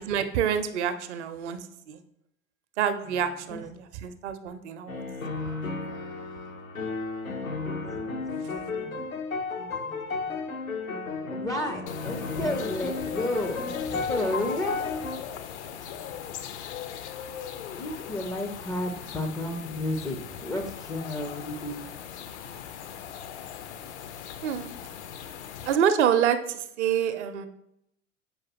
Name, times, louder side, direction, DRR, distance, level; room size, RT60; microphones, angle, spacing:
voice 1, 0.0-1.6 1.9-2.0 2.8-5.1 5.5-5.6 24.4-24.7 25.7-27.5, right 8 dB, 60° right, 10 dB, 0.6 m, -27 dB
sound 1, 4.9-15.2, left 4 dB, 85° left, 0.9 m, -33 dB
voice 2, 8.1-8.5 8.8-9.0 9.6-9.9 10.2-10.3 11.3-14.9 17.8-21.9, left 1 dB, 10° left, 3 dB, 0.4 m, -32 dB
sound 2, 11.9-25.8, left 9 dB, 60° left, 0.6 m, -40 dB
7.1 x 4.8 x 2.9 m, 0.78 s
figure-of-eight pair, 80°, 40 cm